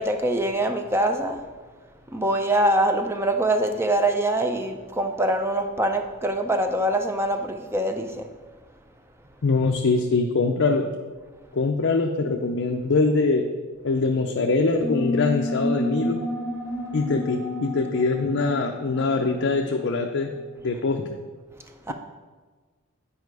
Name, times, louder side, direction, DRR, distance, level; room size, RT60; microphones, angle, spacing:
voice 1, 0.0-1.4 2.1-8.3 21.9-22.0, right 1 dB, 10° right, 6 dB, 0.5 m, -24 dB
voice 2, 9.4-10.9 11.5-13.5 13.8-16.2 16.9-20.3 20.6-21.2, left 3 dB, 55° left, 2 dB, 0.5 m, -23 dB
sound 1, 14.8-20.0, left 2 dB, 10° left, 1.0 m, -30 dB
8.8 x 4.9 x 4.7 m, 1.4 s
head